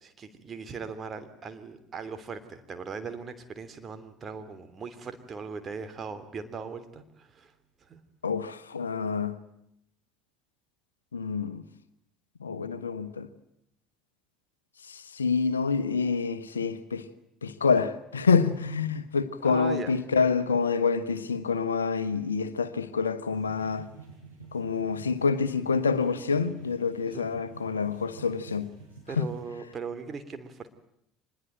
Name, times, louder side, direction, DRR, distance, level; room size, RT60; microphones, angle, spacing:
voice 1, 0.0-7.5 7.8-8.0 19.4-19.9 27.1-27.3 29.1-30.7, right 5 dB, 30° right, 3.1 m, -39 dB
voice 2, 8.2-9.4 11.1-11.6 12.4-13.3 14.9-17.0 17.4-23.9 24.5-28.7 29.2-29.3, left 5 dB, 80° left, 1.2 m, -27 dB
sound 1, 23.3-29.4, right 4 dB, 85° right, 7.2 m, -49 dB
25.0 x 21.0 x 9.1 m
figure-of-eight pair, 60°, 0 cm